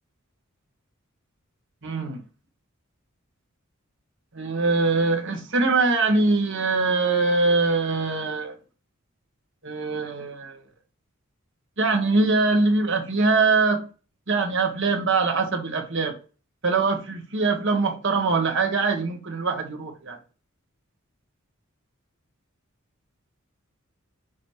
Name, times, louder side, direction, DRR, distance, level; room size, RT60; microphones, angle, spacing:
voice 1, 1.8-2.2 4.3-8.5 9.6-10.6 11.8-13.8 14.3-16.1 16.6-20.2, right 3 dB, 60° right, 1.6 m, -23 dB
6.2 x 4.0 x 4.7 m
head